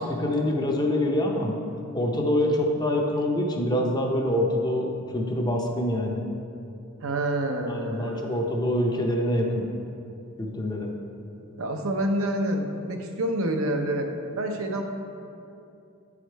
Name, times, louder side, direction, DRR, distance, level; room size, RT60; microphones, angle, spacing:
voice 1, 0.0-1.6 1.9-6.3 7.7-9.7 10.4-11.0, left 1 dB, 20° left, 1 dB, 0.6 m, -25 dB
voice 2, 7.0-8.5 11.6-14.8, right 1 dB, 70° right, 4 dB, 0.7 m, -28 dB
8.7 x 4.9 x 4.5 m, 2.6 s
head